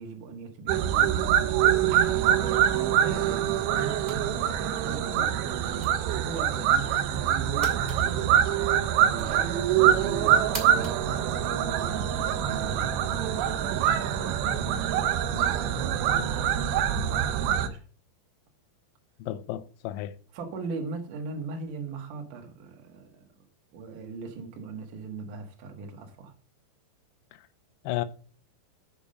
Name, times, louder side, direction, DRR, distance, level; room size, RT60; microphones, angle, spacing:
voice 1, 0.0-5.5 6.1-17.8 20.3-23.3 23.7-26.3, right 4 dB, 60° right, 2.5 m, -40 dB
sound 1, 0.7-17.7, right 10 dB, 90° right, 2.1 m, -25 dB
sound 2, 4.0-12.1, right 2 dB, 25° right, 0.9 m, -45 dB
voice 2, 19.2-20.1 27.8-28.0, left 14 dB, 80° left, 2.9 m, -32 dB
7.3 x 7.1 x 5.0 m
omnidirectional pair, 5.3 m